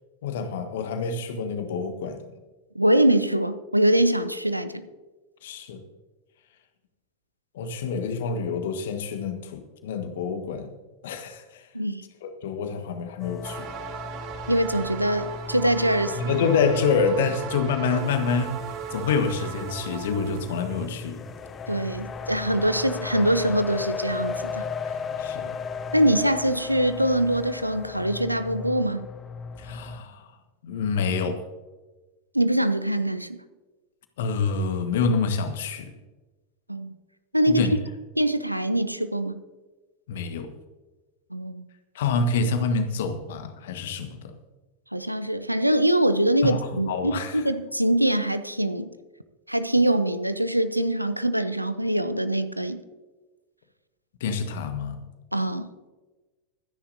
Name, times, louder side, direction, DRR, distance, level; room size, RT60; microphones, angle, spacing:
voice 1, 0.2-2.2 5.4-5.8 7.5-10.7 11.0-11.7 12.2-13.7 16.0-18.6 18.9-21.2 25.2-25.5 29.6-30.3 30.6-31.5 34.2-35.9 37.5-37.7 40.1-40.5 41.9-44.3 46.4-47.4 54.2-55.0, left 5 dB, 55° left, 1.5 m, -27 dB
voice 2, 2.7-4.9 11.7-12.0 14.5-16.2 21.7-24.6 25.9-29.1 32.3-33.4 36.7-36.9 37.3-37.7 38.2-39.3 41.3-41.6 44.9-48.9 49.5-52.8 55.3-55.7, right 1 dB, 90° right, 0.7 m, -23 dB
sound 1, 13.2-30.0, left 5 dB, 25° left, 1.2 m, -36 dB
sound 2, 13.4-20.9, right 8 dB, 40° right, 1.6 m, -37 dB
25.5 x 10.0 x 2.8 m
figure-of-eight pair, 90°, 0 cm